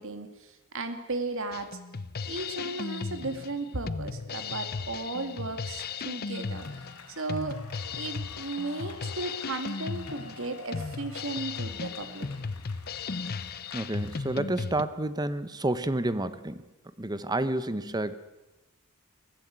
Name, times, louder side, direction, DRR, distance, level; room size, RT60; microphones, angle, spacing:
voice 1, 0.0-1.8 2.3-6.7 7.1-7.6 8.0-12.3, right 2 dB, 60° right, 8 dB, 2.2 m, -35 dB
Drum kit, 1.5-14.8, left 4 dB, 45° left, 0.7 m, -36 dB
sound 1, 6.3-14.3, left 4 dB, 90° left, 4.4 m, -49 dB
voice 2, 13.7-16.6 17.0-18.1, right 1 dB, 20° right, 14 dB, 0.8 m, -30 dB
22.0 x 15.0 x 9.4 m, 1.0 s
head